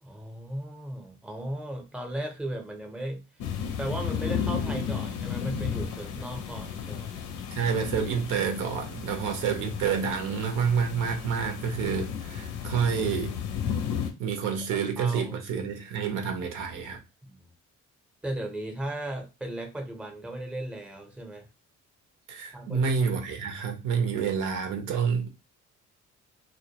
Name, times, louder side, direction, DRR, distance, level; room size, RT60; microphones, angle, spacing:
voice 1, 0.0-3.3 3.8-7.1 15.0-15.4 17.2-17.5 18.2-21.5 22.5-22.9, right 1 dB, 5° right, 0.6 m, -36 dB
sound 1, 3.4-14.1, left 7 dB, 85° left, 0.6 m, -33 dB
voice 2, 7.5-13.3 14.2-17.0 22.3-25.3, right 6 dB, 85° right, 0.7 m, -28 dB
2.1 x 2.1 x 2.7 m
cardioid pair, 90°, 30 cm